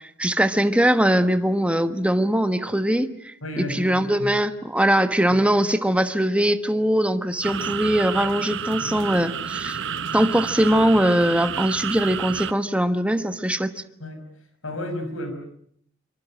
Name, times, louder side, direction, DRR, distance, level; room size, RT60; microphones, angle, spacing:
voice 1, 0.2-9.9 10.1-13.7, right 1 dB, 5° right, 9 dB, 1.3 m, -21 dB
voice 2, 3.4-4.3 14.0-14.2 14.6-15.3, left 1 dB, 85° left, 8 dB, 5.9 m, -32 dB
sound 1, 7.4-12.5, right 7 dB, 65° right, 1.1 m, -30 dB
25.5 x 25.0 x 7.6 m, 0.67 s
head